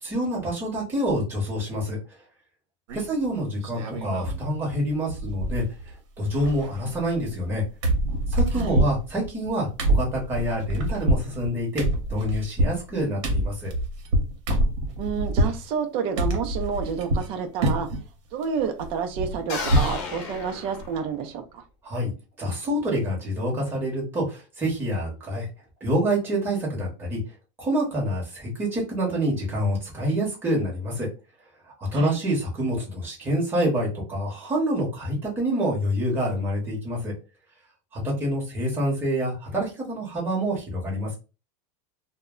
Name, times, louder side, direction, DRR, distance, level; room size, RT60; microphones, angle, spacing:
voice 1, 0.0-2.0 2.9-5.6 6.2-7.6 8.3-13.7 21.8-22.1 22.4-25.5 25.8-27.2 27.6-31.1 31.7-37.1 37.9-41.2, equal, 15° right, -3 dB, 1.0 m, -27 dB
sound 1, 2.9-3.3 3.6-4.4 4.7-4.8 5.1-5.9 6.2-7.5 7.8-15.6 16.2-17.3 17.6-18.1 18.4-20.0 20.4-20.5 20.8-21.0, right 1 dB, 65° right, 0.9 m, -26 dB
voice 2, 15.0-17.9 18.3-21.6 31.9-32.2, right 6 dB, 35° right, 5 dB, 0.5 m, -29 dB
sound 2, 19.5-21.4, left 4 dB, 50° left, 0.8 m, -33 dB
2.1 x 2.1 x 3.6 m, 0.30 s
supercardioid pair, 165°, 17 cm